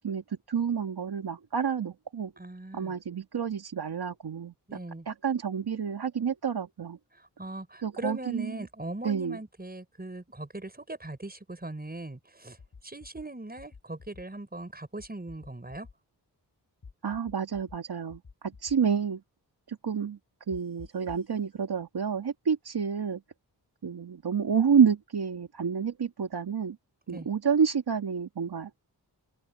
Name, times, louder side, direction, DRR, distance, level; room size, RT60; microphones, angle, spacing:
voice 1, 0.0-2.3 2.7-4.8 5.1-7.0 7.8-8.5 9.0-9.4 17.0-19.2 19.7-20.2 20.5-23.2 23.8-26.8 27.1-28.7, right 7 dB, 75° right, 2.4 m, -29 dB
voice 2, 2.4-2.9 4.7-5.1 7.2-12.6 12.8-15.9 27.1-27.3, right 2 dB, 25° right, 5.6 m, -40 dB
sound 1, 12.6-13.2 13.6-14.2 15.0-15.9 16.8-17.8 18.1-18.8 20.5-21.3, left 5 dB, 60° left, 6.0 m, -50 dB
wide cardioid pair, 70°, 40 cm